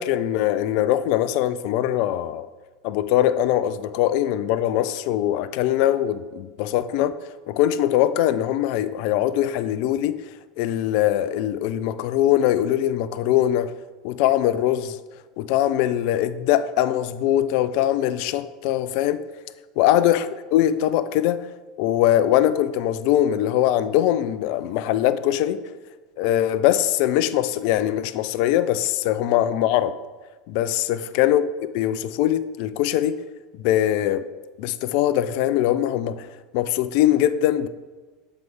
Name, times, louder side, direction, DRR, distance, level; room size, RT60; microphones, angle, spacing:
voice 1, 0.0-2.5 2.8-7.1 7.5-10.2 10.6-13.7 14.0-15.0 15.4-19.2 19.8-21.5 21.8-25.6 26.2-29.9 30.5-31.4 31.7-33.1 33.6-34.2 34.6-36.3 36.5-37.7, left 12 dB, 55° left, 14 dB, 0.3 m, -22 dB
7.7 x 4.5 x 3.5 m, 1.3 s
figure-of-eight pair, 75°, 0 cm